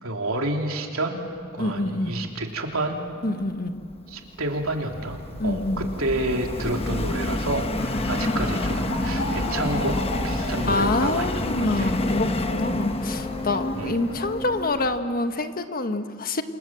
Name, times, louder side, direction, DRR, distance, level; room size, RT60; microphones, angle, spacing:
voice 1, 0.0-1.2 1.5-3.0 4.1-5.2 5.4-10.0 10.2-12.0 13.8-14.0, right 1 dB, 80° right, 2 dB, 3.3 m, -29 dB
voice 2, 1.6-2.2 3.2-3.8 5.4-5.9 10.7-16.4, left 2 dB, 45° left, 8 dB, 1.4 m, -26 dB
Subway metro underground, 3.7-15.0, left 1 dB, 30° left, 1.1 m, -29 dB
sound 1, 7.7-14.6, left 1 dB, 65° left, 5.8 m, -33 dB
28.0 x 27.5 x 7.7 m, 2.1 s
head